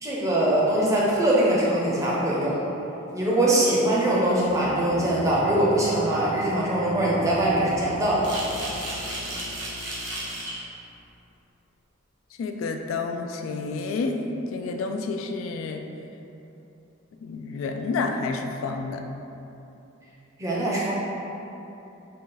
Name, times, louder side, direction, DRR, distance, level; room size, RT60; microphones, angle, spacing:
voice 1, 0.0-2.6 3.1-8.3 20.4-20.9, right 1 dB, 15° right, -6 dB, 0.6 m, -22 dB
sound 1, 4.4-10.3, equal, 50° left, 1.1 m, -38 dB
sound 2, 8.2-10.6, right 1 dB, 55° right, 0.9 m, -34 dB
voice 2, 12.4-15.8 17.2-19.0, left 4 dB, 75° left, 6 dB, 0.3 m, -29 dB
3.8 x 2.3 x 3.8 m, 3.0 s
head